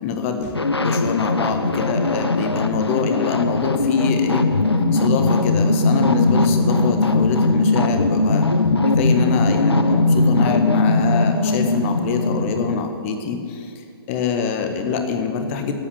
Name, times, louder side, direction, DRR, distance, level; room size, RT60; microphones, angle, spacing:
voice 1, 0.0-4.5 4.9-8.4 9.0-15.7, left 6 dB, 30° left, 6 dB, 1.5 m, -25 dB
sound 1, 0.5-12.8, left 2 dB, 85° left, 0.9 m, -19 dB
11.5 x 8.7 x 9.3 m, 2.5 s
figure-of-eight pair, 125°, 13 cm